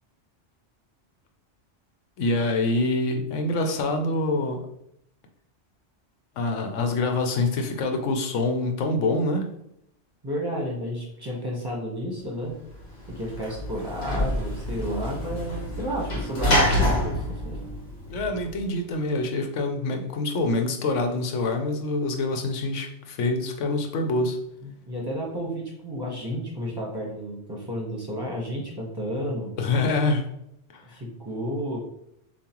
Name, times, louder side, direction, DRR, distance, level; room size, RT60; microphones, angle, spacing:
voice 1, 2.2-4.7 6.4-9.5 18.1-24.4 29.6-30.3 30.7-30.8, left 2 dB, 85° left, 5 dB, 1.0 m, -25 dB
voice 2, 10.2-12.6 13.1-17.6 24.6-29.5 30.9-31.8, equal, 20° right, -3 dB, 1.1 m, -32 dB
Sliding door / Slam, 12.7-18.6, left 1 dB, 60° left, 1.2 m, -27 dB
7.1 x 2.4 x 3.0 m, 0.77 s
omnidirectional pair, 1.2 m